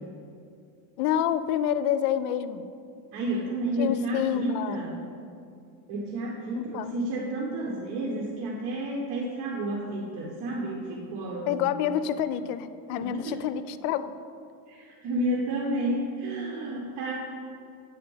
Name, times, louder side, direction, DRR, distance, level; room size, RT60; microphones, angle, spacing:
voice 1, 1.0-2.7 3.8-4.8 6.6-6.9 11.5-14.1, left 10 dB, 90° left, 14 dB, 0.5 m, -28 dB
voice 2, 3.1-5.0 5.9-11.7 13.0-13.4 14.7-17.1, right 1 dB, 60° right, -3 dB, 1.2 m, -31 dB
8.5 x 4.3 x 5.5 m, 2.4 s
cardioid pair, 120°, 45 cm